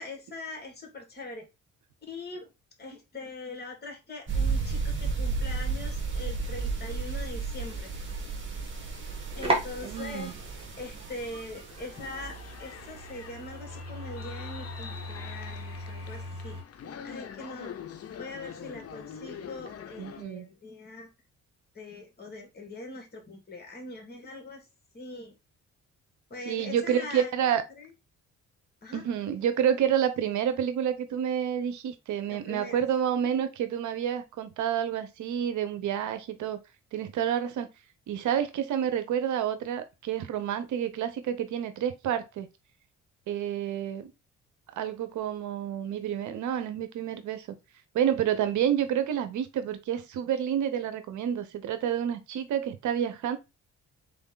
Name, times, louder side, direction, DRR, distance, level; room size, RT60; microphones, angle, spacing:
voice 1, 0.0-1.5 2.1-2.5 2.8-7.9 9.3-10.3 10.8-16.6 17.0-17.7 18.2-21.1 21.7-24.6 24.9-25.3 26.3-27.9 28.8-29.0 32.3-32.8, left 2 dB, 35° left, 2.2 m, -42 dB
sound 1, 4.3-12.7, right 4 dB, 40° right, 1.5 m, -33 dB
sound 2, 9.0-16.6, right 1 dB, 20° right, 1.8 m, -37 dB
voice 2, 9.8-10.3 20.0-20.5 26.4-27.6 28.9-36.6 36.9-37.7 38.1-42.5 43.3-44.1 44.7-47.5 47.9-53.4, right 9 dB, 75° right, 0.8 m, -29 dB
sound 3, 11.7-20.2, left 8 dB, 50° left, 0.8 m, -44 dB
4.0 x 3.4 x 3.8 m
cardioid pair, 90°, 30 cm